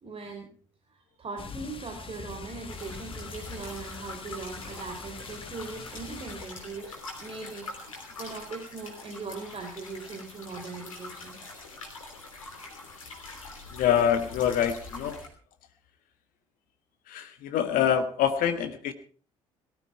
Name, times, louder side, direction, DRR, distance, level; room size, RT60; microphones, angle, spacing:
voice 1, 0.0-0.5 0.9-11.4, right 4 dB, 35° right, 3 dB, 3.4 m, -40 dB
sound 1, 1.4-6.5, left 5 dB, 35° left, 1.8 m, -43 dB
sound 2, 2.7-15.3, left 3 dB, 85° left, 3.2 m, -44 dB
voice 2, 13.7-15.2 17.1-18.9, left 9 dB, 55° left, 9 dB, 1.4 m, -25 dB
18.0 x 13.0 x 4.6 m, 0.42 s
figure-of-eight pair, 50°, 17 cm